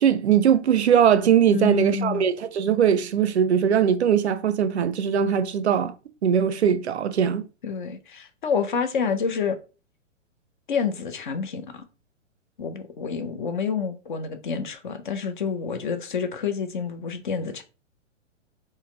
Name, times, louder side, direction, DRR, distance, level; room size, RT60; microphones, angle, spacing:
voice 1, 0.0-5.9 6.2-7.4, right 8 dB, 60° right, 0.4 m, -20 dB
voice 2, 1.5-2.3 7.6-9.6 10.7-11.8 12.6-17.6, left 6 dB, 40° left, 0.5 m, -28 dB
4.0 x 2.1 x 3.5 m
figure-of-eight pair, 115°, 38 cm